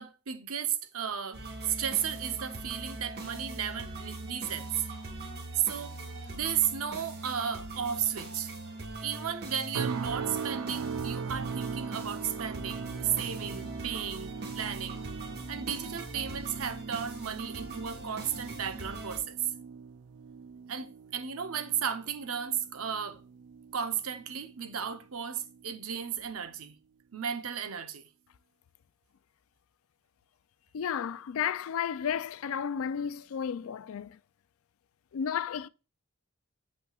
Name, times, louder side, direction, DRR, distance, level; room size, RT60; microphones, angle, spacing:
voice 1, 0.0-4.8 5.5-8.5 9.0-15.1 15.5-19.4 20.7-23.2 23.7-26.8 27.1-28.0, right 8 dB, 75° right, 0.8 m, -34 dB
sound 1, 1.3-19.2, right 2 dB, 50° right, 1.5 m, -42 dB
sound 2, 9.7-25.0 25.3-25.7 26.2-26.4, right 6 dB, 90° right, 0.4 m, -40 dB
voice 2, 30.7-34.2 35.1-35.7, left 8 dB, 65° left, 0.3 m, -32 dB
8.1 x 6.7 x 2.4 m
head